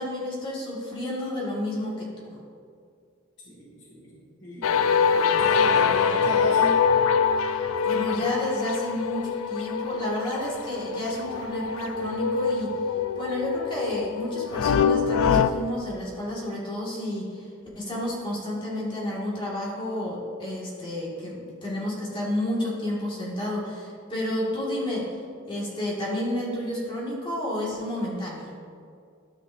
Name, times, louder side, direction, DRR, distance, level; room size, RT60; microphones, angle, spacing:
voice 1, 0.0-2.4 7.4-12.8 13.2-17.5 17.8-25.1 25.5-28.5, left 1 dB, 25° left, -6 dB, 2.1 m, -31 dB
voice 2, 3.4-6.8, right 1 dB, 65° left, -7 dB, 2.0 m, -36 dB
sound 1, 4.6-15.5, left 6 dB, 90° left, 0.3 m, -24 dB
13.0 x 5.7 x 2.7 m, 2.3 s
head